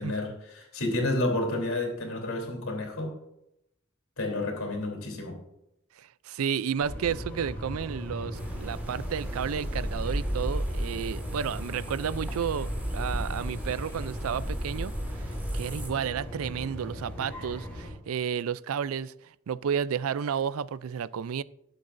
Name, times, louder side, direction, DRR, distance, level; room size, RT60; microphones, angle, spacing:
voice 1, 0.0-3.1 4.2-5.4, left 2 dB, 90° left, 3.4 m, -30 dB
voice 2, 6.0-14.9 15.2-15.3 15.5-19.1 19.5-21.4, right 7 dB, 85° right, 0.4 m, -32 dB
sound 1, 6.8-17.9, equal, 10° left, 4.4 m, -39 dB
sound 2, 8.3-15.9, equal, 10° right, 1.9 m, -34 dB
21.0 x 7.9 x 2.6 m
head